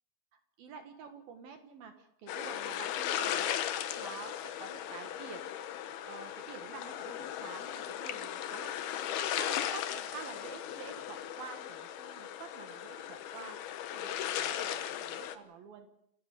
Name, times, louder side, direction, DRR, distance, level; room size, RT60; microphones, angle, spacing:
voice 1, 0.3-5.5 6.0-8.7 9.2-13.6 13.9-15.9, right 5 dB, 65° right, 6 dB, 2.6 m, -48 dB
sound 1, 2.3-15.3, left 11 dB, 75° left, 2.3 m, -37 dB
28.5 x 16.0 x 6.6 m, 0.74 s
omnidirectional pair, 6.0 m